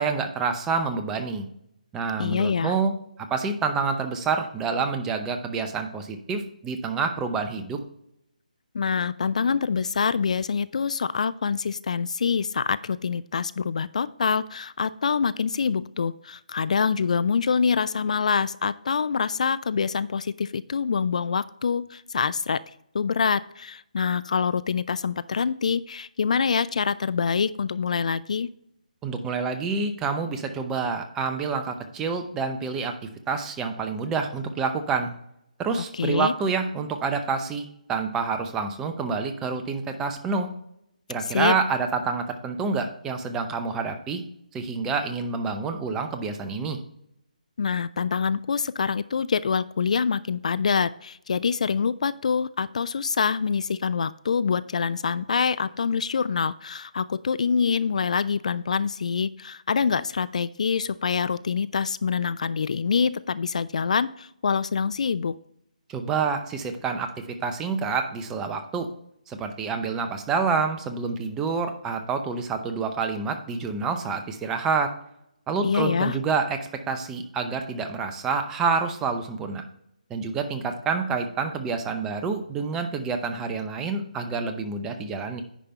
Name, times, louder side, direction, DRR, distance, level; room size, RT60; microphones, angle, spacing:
voice 1, 0.0-1.5 1.9-2.9 3.3-7.8 29.0-35.1 35.6-40.5 41.1-44.2 44.5-46.8 65.9-67.1 67.4-68.9 69.3-74.9 75.5-79.6 80.1-85.4, right 5 dB, 10° right, 6 dB, 0.7 m, -28 dB
voice 2, 2.2-2.8 8.7-22.6 22.9-28.5 35.9-36.3 41.3-41.6 47.6-65.4 75.6-76.2, left 6 dB, 55° left, 17 dB, 0.3 m, -25 dB
10.0 x 5.1 x 4.3 m, 0.75 s
figure-of-eight pair, 150°, 4 cm